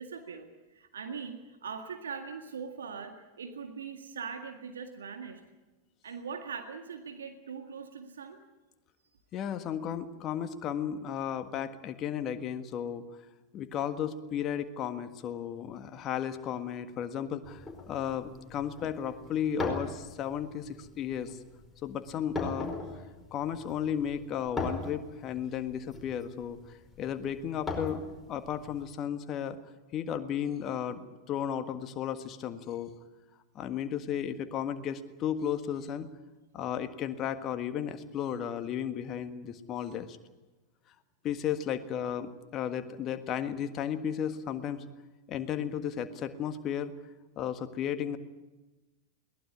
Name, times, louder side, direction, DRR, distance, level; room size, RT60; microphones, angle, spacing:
voice 1, 0.0-5.4 6.0-8.4, right 6 dB, 65° right, 5 dB, 1.9 m, -41 dB
voice 2, 9.3-13.0 13.5-21.4 21.8-22.7 23.3-28.0 28.3-29.6 29.9-32.9 33.5-36.1 36.5-40.2 41.2-44.8 45.3-46.9 47.4-48.2, left 9 dB, 30° left, 10 dB, 1.6 m, -34 dB
sound 1, 17.4-28.8, left 3 dB, 10° left, 4.7 m, -40 dB
22.0 x 18.5 x 9.6 m, 1.1 s
figure-of-eight pair, 90°, 0 cm